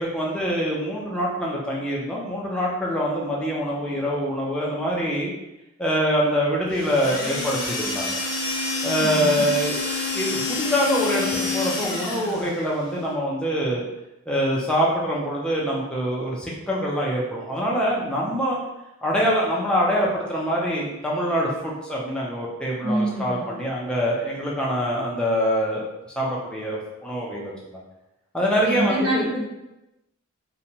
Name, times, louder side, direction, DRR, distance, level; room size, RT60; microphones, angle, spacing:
voice 1, 0.0-5.3 5.8-8.2 8.8-9.8 10.1-13.8 14.3-18.6 19.0-25.9 26.2-27.8 28.3-29.3, equal, 5° left, -5 dB, 0.4 m, -24 dB
sound 1, 6.7-12.6, left 3 dB, 80° left, 0.6 m, -28 dB
voice 2, 9.0-9.5 22.8-23.4 28.6-29.5, right 1 dB, 45° right, -12 dB, 0.9 m, -26 dB
2.8 x 2.1 x 2.7 m, 0.94 s
head